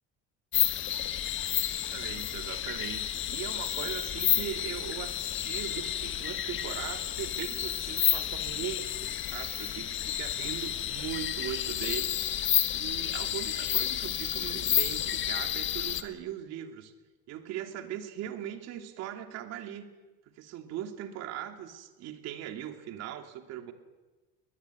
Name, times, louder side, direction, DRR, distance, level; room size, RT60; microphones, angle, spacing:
sound 1, 0.5-16.0, left 11 dB, 45° left, 1.6 m, -31 dB
voice 1, 1.5-12.1 12.7-16.9 17.3-19.9 20.4-23.7, right 11 dB, 60° right, 6 dB, 3.0 m, -40 dB
20.5 x 20.5 x 9.7 m, 1.2 s
cardioid pair, 160°, 29 cm